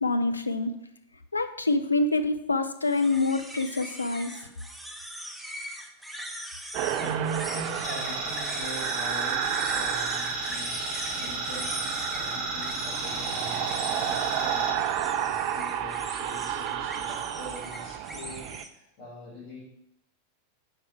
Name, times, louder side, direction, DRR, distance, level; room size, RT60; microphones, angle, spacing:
voice 1, 0.0-0.7 1.3-4.3, left 3 dB, 80° left, 8 dB, 0.4 m, -26 dB
sound 1, 2.8-18.7, right 1 dB, 5° right, 0.6 m, -41 dB
sound 2, 6.7-18.6, right 10 dB, 45° right, 0.4 m, -31 dB
voice 2, 6.9-10.8 11.1-19.6, right 1 dB, 40° left, -7 dB, 2.1 m, -42 dB
sound 3, 7.8-14.7, right 1 dB, 10° left, 1.7 m, -35 dB
4.6 x 4.5 x 5.8 m, 0.81 s
figure-of-eight pair, 90°, 0 cm